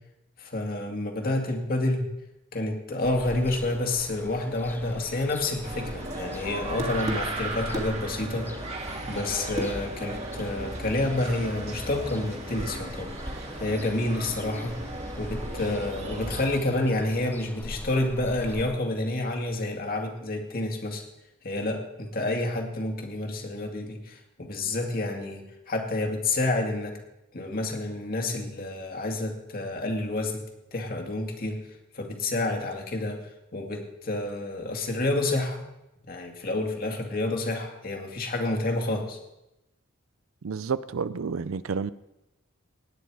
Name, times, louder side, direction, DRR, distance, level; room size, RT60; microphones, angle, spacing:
voice 1, 0.4-2.1 2.5-8.5 9.1-13.1 13.6-21.0 21.4-26.9 27.3-30.4 30.7-31.6 31.9-33.2 33.5-35.7 36.0-39.2, left 2 dB, 45° left, 3 dB, 2.3 m, -29 dB
Ocean, 3.0-18.6, left 1 dB, 10° left, 0.6 m, -44 dB
sound 1, 5.6-16.6, right 1 dB, 30° right, 2.0 m, -35 dB
voice 2, 40.4-41.9, right 5 dB, 75° right, 17 dB, 0.5 m, -30 dB
18.0 x 9.5 x 4.8 m, 0.91 s
head